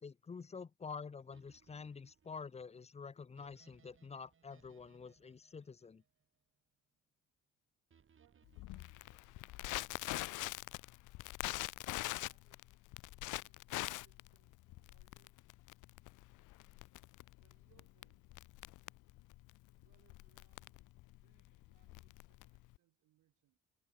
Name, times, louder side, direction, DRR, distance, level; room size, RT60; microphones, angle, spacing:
voice 1, 0.0-6.0, left 5 dB, 20° left, 0.6 m, -48 dB
sound 1, 1.3-6.6 7.9-9.8, right 7 dB, 45° right, 2.6 m, -71 dB
voice 2, 8.2-10.3 11.9-12.8 13.1-15.6 17.4-18.3 19.7-20.8 21.2-23.6, right 15 dB, 90° right, 7.9 m, -76 dB
Crackle, 8.6-22.8, left 19 dB, 80° left, 0.5 m, -44 dB
cardioid pair, 90°, 30 cm